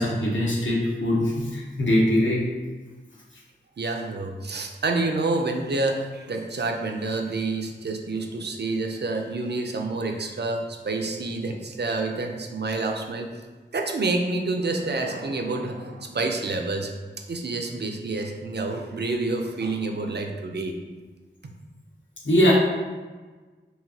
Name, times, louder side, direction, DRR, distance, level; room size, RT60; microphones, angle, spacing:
voice 1, 0.0-2.4 22.2-22.5, equal, 75° left, -5 dB, 1.1 m, -22 dB
voice 2, 3.8-13.3 13.7-16.9 17.3-20.7, right 3 dB, 60° right, 3 dB, 0.5 m, -28 dB
4.8 x 2.8 x 2.8 m, 1.4 s
wide cardioid pair, 45°, 20 cm